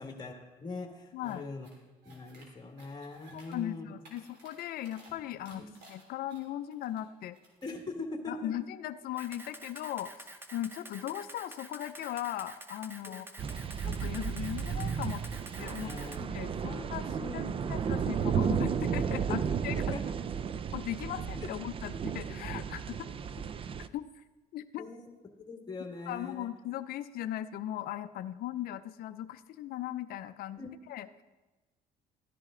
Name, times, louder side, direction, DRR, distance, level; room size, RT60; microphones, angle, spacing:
voice 1, 0.0-1.7 2.0-3.9 5.5-5.6 7.6-8.5 13.1-13.2 15.8-16.2 16.5-16.9 17.2-17.7 19.7-20.0 24.8-25.0 25.4-26.5 30.6-30.7, left 3 dB, 25° left, 3 dB, 1.7 m, -42 dB
voice 2, 1.1-1.5 3.3-5.6 5.9-7.4 8.3-13.3 13.8-15.2 15.6-15.9 16.2-17.4 17.7-20.0 20.7-23.0 23.9-24.1 24.5-24.8 26.1-31.1, left 12 dB, 60° left, 10 dB, 0.5 m, -38 dB
sound 1, 1.2-1.4 1.6-2.5 2.8-3.6 3.9-5.1 5.4-7.0 7.3-7.8, right 2 dB, 80° right, 3.2 m, -57 dB
Camera, 9.2-16.2, right 1 dB, 15° right, 0.8 m, -48 dB
sound 2, 13.4-23.9, right 7 dB, 35° right, 0.4 m, -33 dB
13.5 x 10.5 x 3.7 m, 1.2 s
cardioid pair, 110°, 17 cm